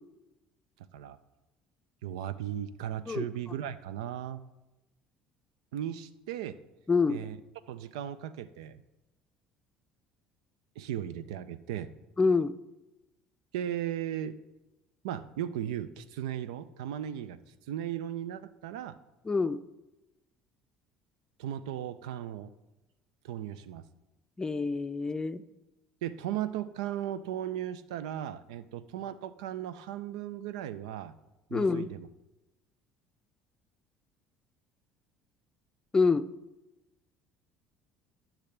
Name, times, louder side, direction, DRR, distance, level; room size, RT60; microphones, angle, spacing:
voice 1, 2.0-4.4 5.7-6.6 7.1-7.4 7.7-8.8 10.8-11.9 13.5-14.4 15.0-17.4 17.7-19.0 21.4-22.5 23.2-23.8 26.0-31.1 31.5-32.1, right 11 dB, 85° right, 15 dB, 0.4 m, -36 dB
voice 2, 6.9-7.2 12.2-12.6 19.2-19.6 24.4-25.4 31.5-31.9 35.9-36.3, left 4 dB, 20° left, 12 dB, 0.5 m, -26 dB
12.0 x 5.8 x 3.3 m, 1.0 s
hypercardioid pair, 70°, 3 cm